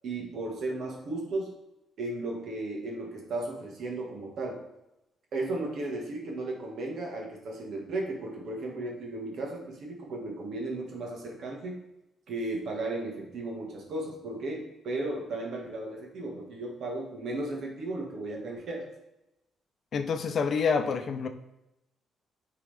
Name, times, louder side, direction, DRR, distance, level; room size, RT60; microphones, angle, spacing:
voice 1, 0.0-1.5 2.0-4.6 5.3-11.8 12.3-18.9, right 2 dB, 65° right, 0 dB, 1.7 m, -35 dB
voice 2, 19.9-21.3, left 5 dB, 55° left, 8 dB, 0.6 m, -27 dB
9.7 x 3.8 x 3.4 m, 0.90 s
cardioid pair, 90°, 0 cm